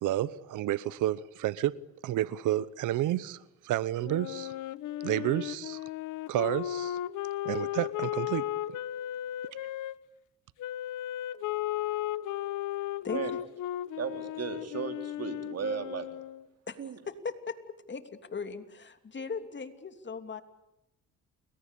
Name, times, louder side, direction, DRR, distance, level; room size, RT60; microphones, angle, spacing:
voice 1, 0.0-1.7 2.0-4.5 5.0-5.8 6.3-7.0 7.4-8.4, right 13 dB, 85° right, 0.9 m, -30 dB
Wind instrument woodwind instrument, 4.0-9.9 10.6-16.5, left 13 dB, 85° left, 1.2 m, -35 dB
voice 2, 12.7-13.2 16.7-16.8 17.0-17.6 17.9-18.0 18.3-20.4, left 5 dB, 35° left, 3.1 m, -38 dB
voice 3, 14.0-16.1 16.8-17.0, right 7 dB, 55° right, 3.4 m, -35 dB
29.5 x 22.5 x 8.4 m
cardioid pair, 90°, 30 cm